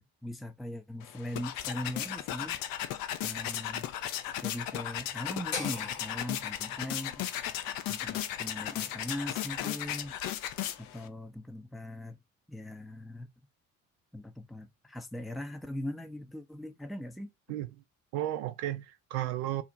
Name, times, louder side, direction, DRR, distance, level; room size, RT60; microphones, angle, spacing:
voice 1, 0.0-2.6 3.2-3.9 4.4-7.3 7.9-10.1 10.8-12.2 12.5-13.3 14.1-17.3, left 1 dB, ahead, 0.4 m, -40 dB
sound 1, 1.0-11.1, left 11 dB, 60° left, 0.5 m, -36 dB
sound 2, 5.5-9.6, left 4 dB, 75° left, 1.0 m, -43 dB
voice 2, 17.5-17.8 18.1-19.6, right 14 dB, 80° right, 0.5 m, -34 dB
2.7 x 2.1 x 2.7 m
hypercardioid pair, 45°, 41 cm